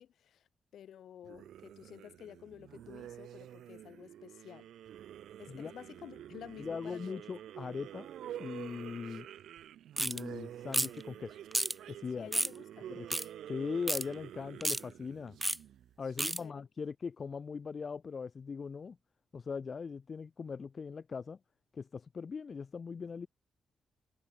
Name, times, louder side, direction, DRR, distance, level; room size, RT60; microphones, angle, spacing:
voice 1, 0.0-4.7 5.4-7.2 12.2-12.9 16.2-16.7, left 10 dB, 80° left, 5.0 m, -51 dB
sound 1, 1.2-16.1, right 11 dB, 85° right, 3.3 m, -48 dB
voice 2, 6.6-8.1 8.4-9.3 10.0-11.4 11.9-12.3 12.9-13.1 13.5-15.4 16.0-19.0 19.3-21.4 21.7-23.3, left 5 dB, 45° left, 0.8 m, -40 dB
sound 2, 10.0-10.2 10.7-11.0 11.5-11.7 12.3-12.6 13.1-13.3 13.9-14.0 14.6-14.8 15.4-15.6 16.2-16.4, right 1 dB, 10° right, 0.5 m, -31 dB
cardioid pair, 80°, 0 cm